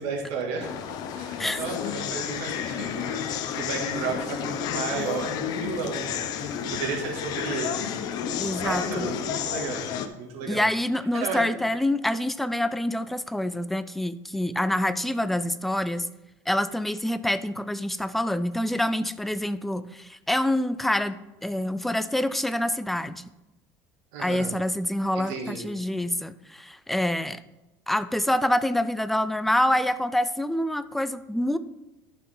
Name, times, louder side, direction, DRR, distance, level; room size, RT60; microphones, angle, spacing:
voice 1, 0.0-3.3 3.5-6.3 6.7-7.9 8.6-9.9 10.2-10.6 11.1-11.5 24.1-24.5 25.2-25.6, right 4 dB, 70° right, -1 dB, 2.4 m, -33 dB
sound 1, 0.6-10.1, left 8 dB, 50° left, 0.7 m, -31 dB
voice 2, 8.4-9.1 10.5-16.1 16.5-23.2 24.2-27.4 27.9-31.6, left 1 dB, ahead, 13 dB, 0.3 m, -26 dB
11.5 x 5.7 x 3.9 m, 1.0 s
cardioid pair, 145°, 8 cm